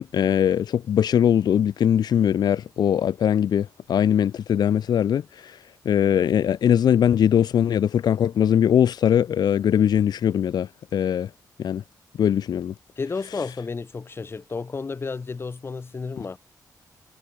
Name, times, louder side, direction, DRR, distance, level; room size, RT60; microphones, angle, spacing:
voice 1, 0.0-5.6 5.8-11.3 11.6-11.8 12.2-12.7, left 9 dB, 85° left, 1.2 m, -21 dB
voice 2, 13.0-16.4, left 4 dB, 35° left, 4.3 m, -32 dB
wide cardioid pair, 120°, 7 cm